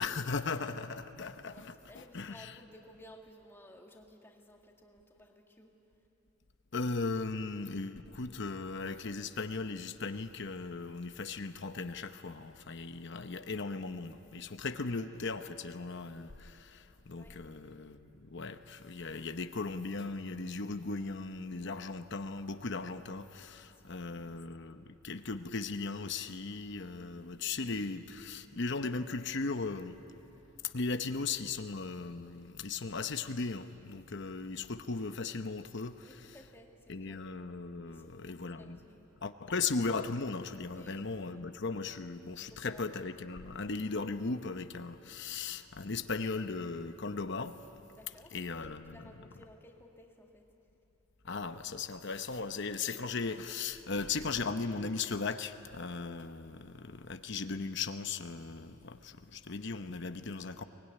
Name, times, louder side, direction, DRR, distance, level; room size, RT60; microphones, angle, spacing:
voice 1, 0.0-2.6 6.7-30.0 30.6-36.3 36.9-38.8 39.2-47.6 48.3-49.1 51.2-60.6, left 4 dB, 55° left, 9 dB, 0.8 m, -37 dB
voice 2, 1.4-5.8 17.2-17.4 23.6-24.4 36.0-37.2 37.8-39.2 40.7-41.5 42.5-42.9 47.9-50.5 52.9-53.1, equal, 10° left, 1 dB, 2.0 m, -57 dB
23.5 x 20.0 x 9.9 m, 2.9 s
head